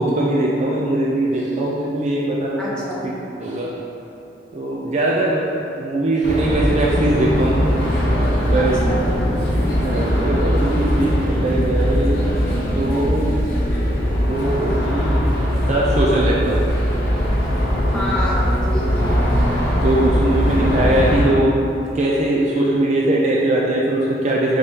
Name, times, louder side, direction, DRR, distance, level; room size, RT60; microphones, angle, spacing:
voice 1, 0.0-2.8 3.4-3.8 4.5-7.7 8.5-8.8 9.8-12.2 12.8-13.5 14.2-15.1 15.6-16.7 19.8-24.6, right 1 dB, 35° right, -4 dB, 0.4 m, -20 dB
voice 2, 2.6-3.0 8.5-9.3 17.9-19.2, left 1 dB, 5° left, -8 dB, 0.7 m, -27 dB
sound 1, 6.2-21.2, equal, 50° left, 0.8 m, -20 dB
5.1 x 3.4 x 2.8 m, 2.8 s
head